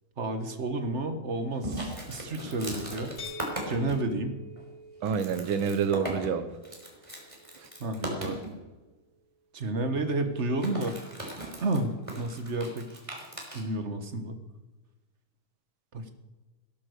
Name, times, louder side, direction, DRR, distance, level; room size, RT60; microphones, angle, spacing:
voice 1, 0.2-3.1 3.7-4.4 7.8-8.4 9.5-10.9 11.6-12.9 13.5-14.4 15.9-16.1, right 2 dB, 35° right, 8 dB, 1.5 m, -31 dB
sound 1, 1.6-4.0 4.6-4.7 5.0-8.5 10.4-13.6, right 1 dB, 15° right, 3.7 m, -38 dB
sound 2, 3.2-9.0, left 1 dB, 35° left, 1.6 m, -48 dB
voice 2, 5.0-6.4, right 6 dB, 75° right, 11 dB, 1.9 m, -27 dB
17.5 x 11.5 x 6.7 m, 1.2 s
omnidirectional pair, 2.3 m